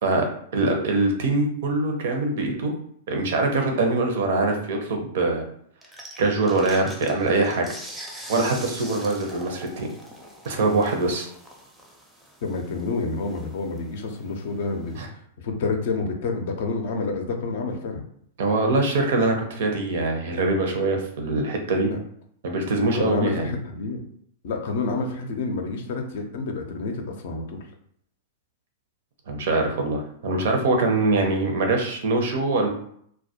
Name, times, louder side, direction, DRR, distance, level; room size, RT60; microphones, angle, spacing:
voice 1, 0.0-2.7 3.1-5.4 6.2-7.7 8.3-9.9 10.4-11.3 15.0-15.1 18.4-21.9 22.4-23.5 29.3-32.7, right 2 dB, 60° right, 3 dB, 0.5 m, -23 dB
sound 1, 5.8-15.1, equal, 5° right, 0.5 m, -43 dB
voice 2, 12.4-14.9 15.4-18.0 21.8-22.0 22.9-24.0 24.4-27.6, left 3 dB, 60° left, 4 dB, 0.5 m, -28 dB
2.1 x 2.1 x 2.7 m, 0.66 s
figure-of-eight pair, 100°, 0 cm